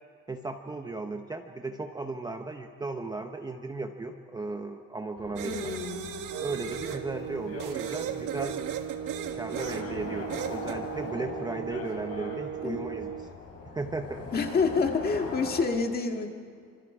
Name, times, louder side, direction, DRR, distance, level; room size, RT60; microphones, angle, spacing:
voice 1, 0.3-5.7 6.4-8.6 9.3-13.3 13.6-14.3, right 3 dB, 15° right, 4 dB, 0.7 m, -36 dB
sound 1, 5.2-15.6, left 4 dB, 50° left, 5.4 m, -41 dB
voice 2, 5.4-6.2 12.6-12.8 14.3-16.3, left 4 dB, 30° left, 4 dB, 1.8 m, -28 dB
sound 2, 5.4-7.0 7.6-9.9 10.3-10.8, right 9 dB, 80° right, 1.6 m, -37 dB
sound 3, 6.3-13.4, right 9 dB, 50° right, 0.6 m, -38 dB
26.5 x 26.0 x 4.9 m, 2.3 s
cardioid pair, 180°, 31 cm